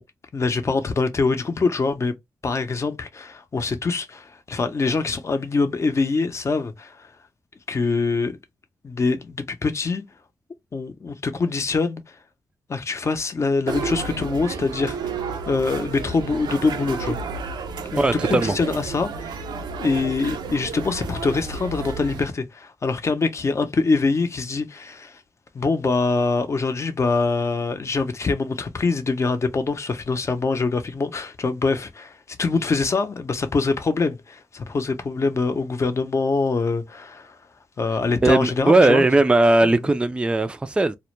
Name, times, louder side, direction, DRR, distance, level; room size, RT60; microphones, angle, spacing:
voice 1, 0.3-2.1 2.4-7.1 7.7-8.4 8.8-10.0 10.7-12.1 12.7-15.2 15.5-17.2 17.9-18.0 18.3-19.4 19.8-25.2 25.5-37.4 37.8-39.0 39.6-39.7, left 4 dB, 40° left, 0.6 m, -24 dB
sound 1, 13.7-22.2, right 4 dB, 75° right, 0.4 m, -31 dB
voice 2, 18.0-18.5 38.2-41.0, right 2 dB, 15° right, 0.3 m, -18 dB
2.1 x 2.1 x 3.0 m
cardioid pair, 65°, 7 cm